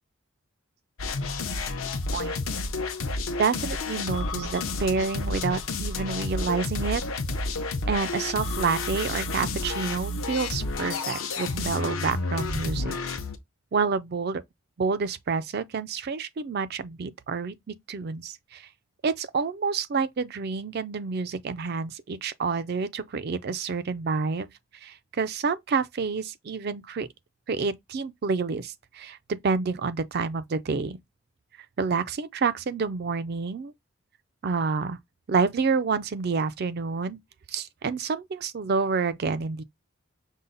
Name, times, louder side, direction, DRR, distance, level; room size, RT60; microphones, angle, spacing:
sound 1, 1.0-13.4, left 3 dB, 75° left, 0.7 m, -30 dB
voice 1, 3.4-7.0 7.9-13.0 13.7-14.4 14.8-18.6 19.0-24.5 24.8-27.1 27.5-31.0 31.8-33.7 34.4-35.0 35.3-37.2 37.5-39.6, right 5 dB, 50° right, 0.4 m, -28 dB
5.5 x 2.1 x 3.9 m
head